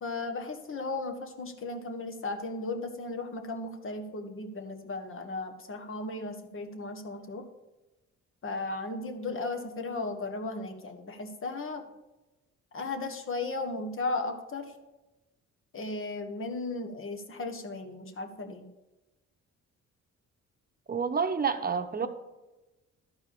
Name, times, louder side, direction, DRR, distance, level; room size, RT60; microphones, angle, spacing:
voice 1, 0.0-7.4 8.4-11.9 12.7-14.7 15.7-18.7, left 3 dB, 45° left, 6 dB, 1.6 m, -36 dB
voice 2, 20.9-22.1, right 6 dB, 30° right, 7 dB, 1.0 m, -28 dB
13.0 x 4.8 x 7.0 m, 1.0 s
cardioid pair, 90°, 30 cm